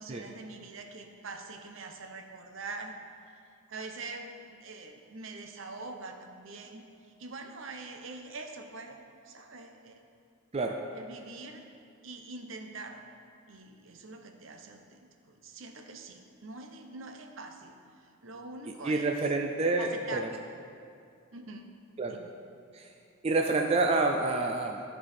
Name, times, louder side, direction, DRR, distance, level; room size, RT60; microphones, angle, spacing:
voice 1, 0.0-2.9 3.3-3.4 3.7-10.0 10.9-11.7 12.0-13.0 13.5-19.1 19.8-20.4 21.3-21.7 22.1-22.3, right 3 dB, 70° right, 5 dB, 0.7 m, -44 dB
voice 2, 18.8-20.3 22.0-22.2 22.7-22.9 23.2-24.8, right 3 dB, 30° right, 3 dB, 0.4 m, -28 dB
13.0 x 4.7 x 4.3 m, 2.4 s
head